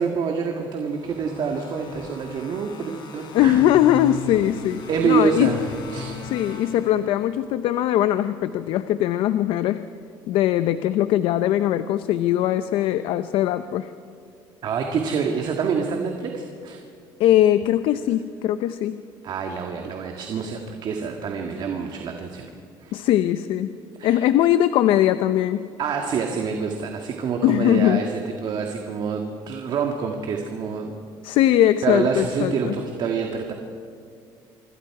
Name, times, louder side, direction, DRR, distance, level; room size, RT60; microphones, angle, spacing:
voice 1, 0.0-3.6 4.9-5.6 5.9-6.2 14.6-16.8 19.2-22.5 22.8-22.9 24.0-24.2 25.8-30.9 31.8-33.5, right 6 dB, 55° right, 3 dB, 1.9 m, -26 dB
sound 1, 0.8-7.5, left 4 dB, 60° left, 4.5 m, -38 dB
voice 2, 3.3-5.6 6.2-9.9 10.3-13.9 17.2-19.0 22.9-23.8 24.0-25.7 27.4-28.1 31.2-32.8, left 12 dB, 75° left, 12 dB, 0.7 m, -20 dB
26.0 x 25.0 x 4.8 m, 2.3 s
cardioid pair, 105°, 9 cm